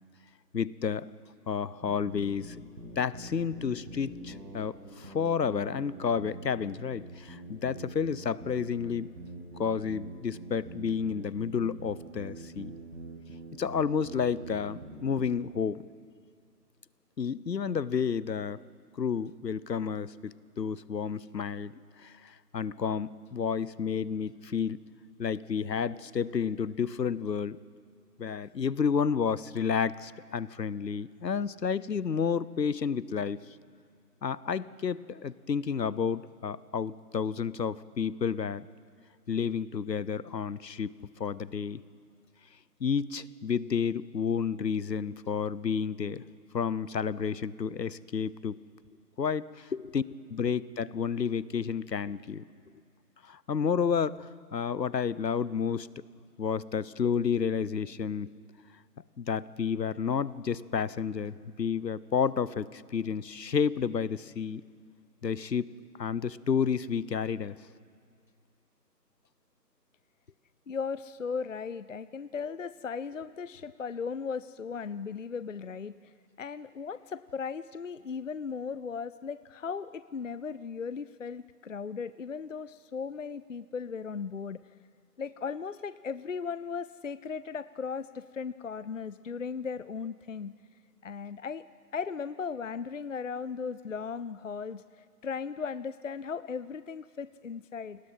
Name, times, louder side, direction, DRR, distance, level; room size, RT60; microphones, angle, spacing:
voice 1, 0.5-1.1 1.5-2.6 3.0-9.1 9.6-12.7 13.6-15.8 17.2-18.6 19.0-24.8 25.2-27.6 28.2-33.4 34.2-38.7 39.3-40.9 41.2-41.8 42.8-46.2 46.5-48.6 49.2-49.7 49.9-50.0 50.3-52.4 53.2-55.9 56.4-58.3 59.2-64.6 65.2-65.7 66.0-67.5, left 6 dB, 80° left, 19 dB, 1.0 m, -31 dB
sound 1, 1.8-15.3, right 2 dB, 75° right, 7.5 m, -44 dB
voice 2, 70.7-75.9 76.4-84.6 85.2-90.5 91.0-91.6 91.9-98.0, left 5 dB, 50° left, 15 dB, 0.6 m, -37 dB
29.0 x 20.0 x 5.7 m, 2.2 s
figure-of-eight pair, 165°, 49 cm